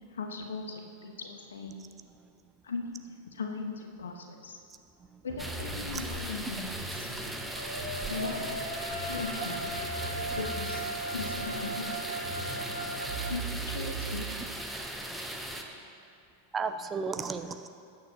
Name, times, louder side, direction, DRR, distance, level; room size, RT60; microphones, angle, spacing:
voice 1, 0.1-1.7 2.6-4.6 5.2-7.1 8.1-8.4 9.0-9.6 10.3-10.8 11.1-12.1 13.2-14.3 15.1-15.3, left 4 dB, 65° left, 4 dB, 1.1 m, -38 dB
sound 1, 5.3-7.4 7.8-8.6 8.9-11.9 12.2-14.7, right 3 dB, 50° right, 3.2 m, -41 dB
sound 2, 5.4-15.6, right 1 dB, 5° right, 1.0 m, -38 dB
sound 3, 7.5-13.3, right 1 dB, 90° right, 1.0 m, -37 dB
voice 2, 16.5-17.7, right 5 dB, 20° right, 8 dB, 0.5 m, -34 dB
19.5 x 8.8 x 2.9 m, 2.4 s
figure-of-eight pair, 90°, 0 cm